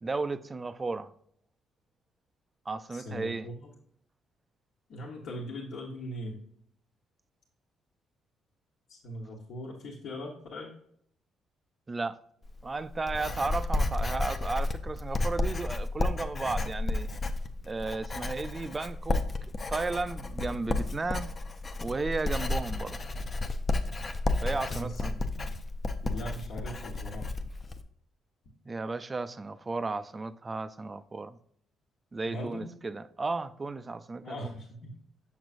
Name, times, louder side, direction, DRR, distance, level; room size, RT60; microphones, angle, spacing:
voice 1, 0.0-1.1 2.7-3.5 11.9-12.2 12.6-17.1 17.7-19.2 19.7-21.3 21.8-23.0 24.4-25.1 28.7-31.4 32.1-34.5, right 3 dB, 20° right, 0.3 m, -34 dB
voice 2, 2.9-3.7 4.9-6.4 8.9-10.7 24.5-25.1 25.4-25.5 26.0-27.3 32.3-32.7 34.2-34.9, left 1 dB, 65° left, 1.3 m, -40 dB
Writing, 12.4-27.8, left 2 dB, 25° left, 0.5 m, -32 dB
7.1 x 6.1 x 2.5 m
cardioid pair, 130°, 0 cm